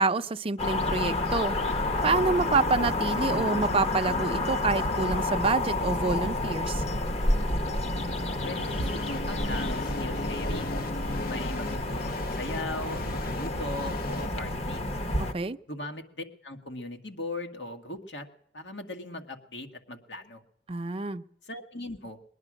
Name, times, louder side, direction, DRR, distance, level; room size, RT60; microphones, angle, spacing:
voice 1, 0.0-1.6 2.0-6.8 15.2-15.6 20.7-21.2, right 3 dB, 35° right, 0.5 m, -27 dB
sound 1, 0.6-15.3, left 2 dB, 35° left, 1.1 m, -29 dB
sound 2, 0.7-14.3, left 2 dB, 55° left, 0.6 m, -40 dB
voice 2, 8.3-10.8 11.3-14.9 15.7-18.3 18.5-20.4 21.5-22.2, left 2 dB, 85° left, 2.0 m, -39 dB
21.0 x 11.0 x 6.3 m
head